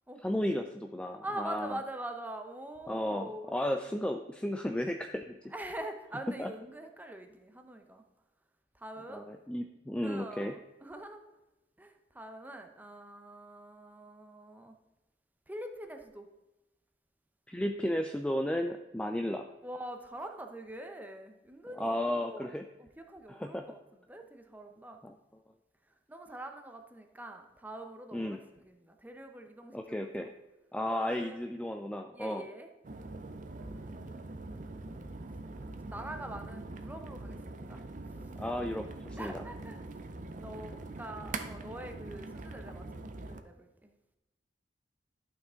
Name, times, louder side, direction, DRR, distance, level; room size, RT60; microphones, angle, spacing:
voice 1, 0.2-1.8 2.9-5.4 6.4-6.5 9.1-10.5 17.5-19.4 21.8-22.6 23.3-23.7 25.0-25.1 28.1-28.4 29.7-30.3 30.7-32.5 38.4-39.4, left 1 dB, 5° left, 5 dB, 0.3 m, -34 dB
voice 2, 1.2-3.8 5.5-8.0 8.7-9.3 10.0-11.2 11.8-14.8 15.5-16.3 19.6-22.5 22.8-23.8 24.1-25.0 26.1-30.3 30.9-31.5 32.1-32.7 33.6-35.0 35.8-37.8 39.2-43.9, right 1 dB, 10° right, 5 dB, 0.8 m, -44 dB
sound 1, 32.8-43.4, right 2 dB, 45° right, 0.6 m, -43 dB
12.0 x 5.6 x 3.7 m, 1.0 s
head